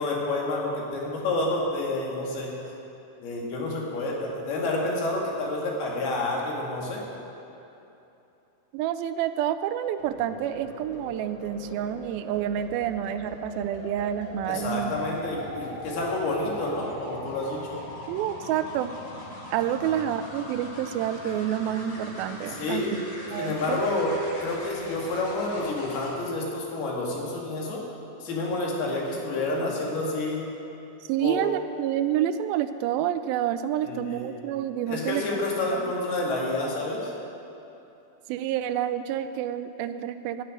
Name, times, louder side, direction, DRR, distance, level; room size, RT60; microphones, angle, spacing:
voice 1, 0.0-2.5 3.2-7.0 14.5-17.8 19.8-19.9 22.5-22.9 23.4-24.1 24.4-27.8 28.2-30.4 31.2-31.4 33.8-34.3 34.9-37.1, left 2 dB, 90° left, -2 dB, 4.0 m, -29 dB
voice 2, 8.7-14.9 18.1-18.9 19.5-23.0 23.3-23.9 31.1-35.4 35.7-35.9 38.3-40.4, right 10 dB, 85° right, 11 dB, 2.3 m, -28 dB
sound 1, 10.0-26.1 28.0-28.3, left 1 dB, 45° left, 3.0 m, -41 dB
13.0 x 6.8 x 10.0 m, 2.9 s
omnidirectional pair, 4.4 m